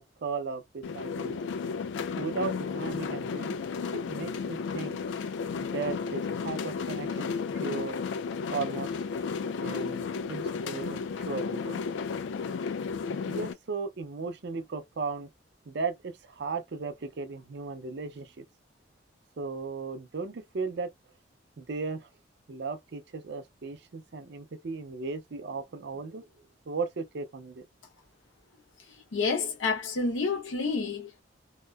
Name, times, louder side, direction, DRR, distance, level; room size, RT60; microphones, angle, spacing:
voice 1, 0.0-1.4 2.2-3.6 3.9-5.0 5.6-8.0 8.5-8.9 9.6-11.8 13.3-15.3 15.7-18.4 19.4-20.9 21.6-22.1 22.5-26.3 26.7-27.7, right 4 dB, 60° right, 0.5 m, -36 dB
sound 1, 0.8-13.5, left 5 dB, 70° left, 0.3 m, -33 dB
voice 2, 29.1-31.2, left 4 dB, 85° left, 0.8 m, -29 dB
2.9 x 2.0 x 2.2 m
head